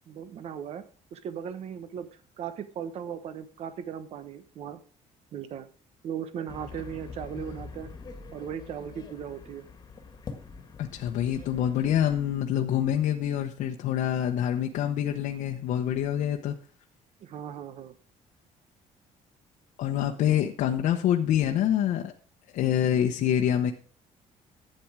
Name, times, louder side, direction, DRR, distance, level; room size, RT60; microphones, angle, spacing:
voice 1, 0.1-0.8 1.1-2.1 2.4-4.8 5.3-5.7 6.0-7.9 8.3-9.6 17.2-17.9, right 8 dB, 50° right, 12 dB, 1.1 m, -37 dB
sound 1, 6.5-12.4, left 5 dB, 30° left, 1.8 m, -45 dB
voice 2, 10.8-16.6 19.8-22.1 22.5-23.7, left 10 dB, 70° left, 3 dB, 1.1 m, -26 dB
12.0 x 8.9 x 4.8 m, 0.40 s
cardioid pair, 160°, 14 cm